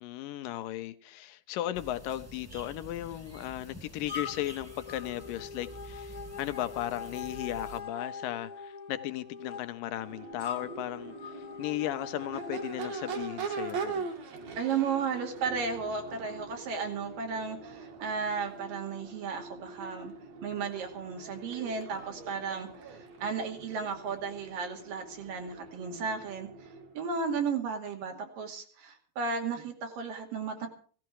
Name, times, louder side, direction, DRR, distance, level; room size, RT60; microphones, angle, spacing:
voice 1, 0.0-14.1, left 14 dB, 75° left, 2.3 m, -36 dB
sound 1, 1.7-7.8, right 1 dB, 5° right, 1.5 m, -48 dB
sound 2, 4.1-13.2, left 6 dB, 40° left, 1.3 m, -43 dB
Crowd / Race car auto racing / Accelerating revving vroom, 9.9-27.0, right 5 dB, 50° right, 2.9 m, -42 dB
voice 2, 14.6-20.1 20.4-26.5 26.9-30.7, right 5 dB, 65° right, 4.0 m, -34 dB
17.5 x 15.0 x 4.8 m
omnidirectional pair, 4.3 m